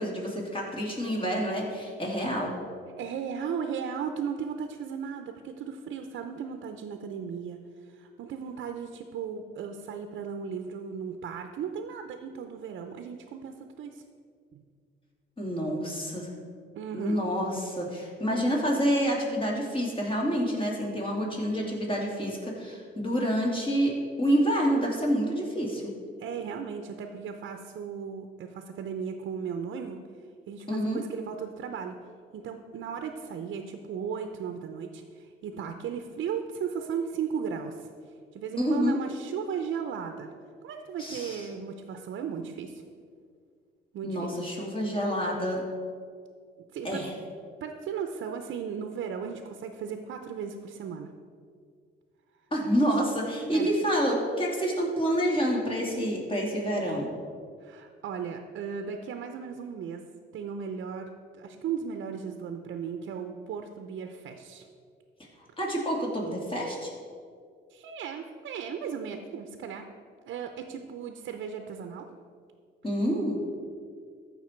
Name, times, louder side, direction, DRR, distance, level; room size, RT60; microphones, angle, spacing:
voice 1, 0.0-2.6 15.4-16.3 16.9-25.9 30.7-31.0 38.6-39.0 41.0-41.4 44.0-45.6 46.8-47.1 52.5-57.0 65.6-66.9 72.8-73.4, equal, 25° left, -2 dB, 2.9 m, -28 dB
voice 2, 3.0-7.6 7.9-14.0 14.5-14.6 16.8-17.2 26.2-30.0 30.5-32.0 32.3-37.9 38.3-40.3 40.6-42.8 43.9-44.3 46.7-47.0 47.6-51.1 52.9-53.0 53.5-53.7 57.6-60.0 60.3-64.6 67.7-69.9 70.3-72.1, right 7 dB, 75° right, 6 dB, 0.7 m, -36 dB
14.5 x 5.7 x 4.5 m, 2.1 s
cardioid pair, 90°, 20 cm